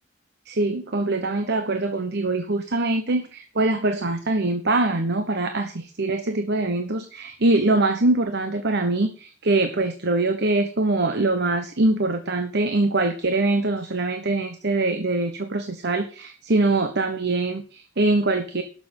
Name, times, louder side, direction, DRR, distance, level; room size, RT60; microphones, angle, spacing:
voice 1, 0.5-18.6, right 2 dB, 55° right, 8 dB, 1.2 m, -23 dB
11.5 x 6.9 x 7.1 m, 0.39 s
head